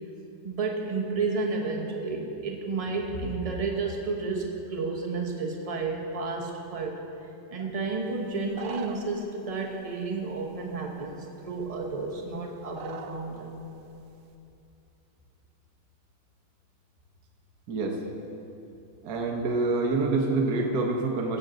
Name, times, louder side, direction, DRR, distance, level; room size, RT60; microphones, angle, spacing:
voice 1, 0.4-7.0 7.5-13.6, right 3 dB, 25° right, 0 dB, 0.9 m, -31 dB
sound 1, 8.3-9.3 10.4-10.5 11.2-11.3 11.6-12.3 12.7-13.2 13.5-14.0, right 7 dB, 75° right, 1.3 m, -41 dB
voice 2, 17.7-18.0 19.0-21.4, right 3 dB, 60° right, 0 dB, 1.4 m, -26 dB
16.0 x 7.9 x 3.9 m, 2.8 s
omnidirectional pair, 2.1 m